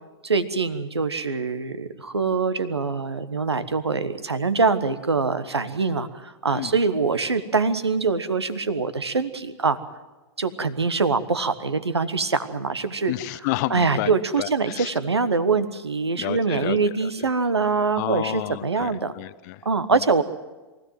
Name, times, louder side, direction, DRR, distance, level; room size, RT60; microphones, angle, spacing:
voice 1, 0.2-9.8 10.4-13.1 13.7-19.1 19.6-20.2, right 4 dB, 80° right, 12 dB, 1.3 m, -24 dB
voice 2, 13.1-14.9 16.2-17.3 17.9-19.6 19.9-20.0, left 17 dB, 40° left, 16 dB, 0.8 m, -31 dB
23.5 x 16.0 x 7.6 m, 1.2 s
figure-of-eight pair, 100°, 14 cm